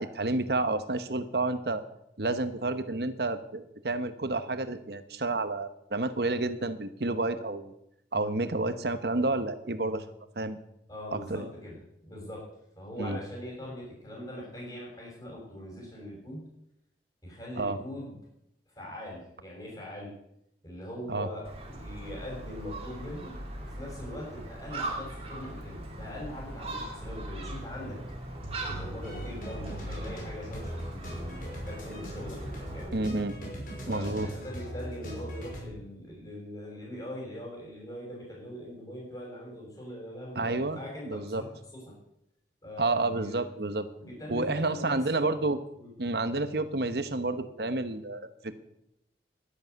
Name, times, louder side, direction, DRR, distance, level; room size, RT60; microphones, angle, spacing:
voice 1, 0.0-1.8 2.2-7.7 8.1-10.0 10.4-10.6 11.1-11.5 13.0-13.2 17.6-17.8 21.1-21.3 32.9-33.4 33.9-34.3 40.4-40.8 41.1-41.4 42.8-43.9 44.3-45.6 46.0-48.3, right 2 dB, 65° right, 11 dB, 1.1 m, -30 dB
voice 2, 10.9-12.5 12.7-16.4 17.2-18.2 18.7-20.1 20.6-28.0 28.6-33.1 33.8-41.5 41.7-41.9 42.6-43.4 44.0-45.4 45.8-45.9, left 1 dB, 25° left, -5 dB, 6.3 m, -42 dB
Gull seagull, 21.4-32.9, right 1 dB, 35° right, 2.8 m, -40 dB
sound 1, 28.3-35.6, equal, 50° left, 5.6 m, -39 dB
12.0 x 11.0 x 8.1 m, 0.78 s
head